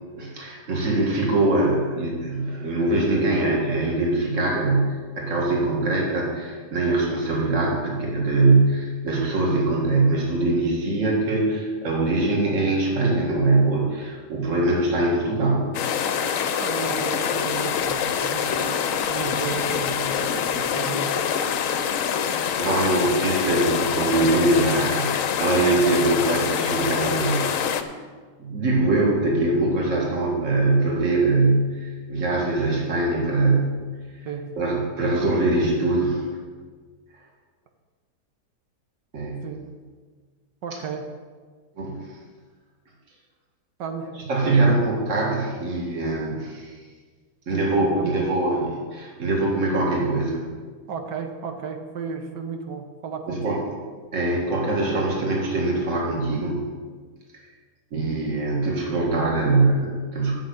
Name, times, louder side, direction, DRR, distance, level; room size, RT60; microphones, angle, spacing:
voice 1, 0.2-15.7 22.2-27.5 28.4-33.8 34.6-36.3 39.1-39.5 41.8-42.0 44.3-46.8 47.5-50.5 53.3-53.6 54.1-56.6 57.9-60.3, right 2 dB, 45° right, -2 dB, 2.3 m, -22 dB
sound 1, 15.7-27.8, left 8 dB, 65° left, 0.9 m, -25 dB
voice 2, 16.2-21.2 34.2-34.7 39.4-39.6 40.6-41.1 43.8-44.2 44.4-44.8 47.5-48.2 50.9-53.7, right 5 dB, 75° right, 5 dB, 1.7 m, -34 dB
8.9 x 6.6 x 8.5 m, 1.5 s
omnidirectional pair, 1.9 m